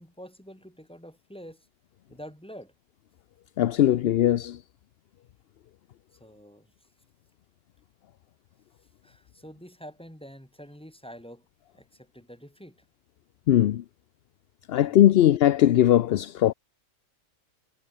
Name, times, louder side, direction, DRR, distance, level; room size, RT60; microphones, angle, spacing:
voice 1, 0.0-1.7 2.1-2.7 6.2-6.7 9.0-11.5 11.7-12.9 14.7-15.0, equal, 5° left, 7.0 m, -46 dB
voice 2, 3.6-4.6 13.5-13.8 14.7-16.5, left 12 dB, 60° left, 0.7 m, -20 dB
omnidirectional pair, 1.4 m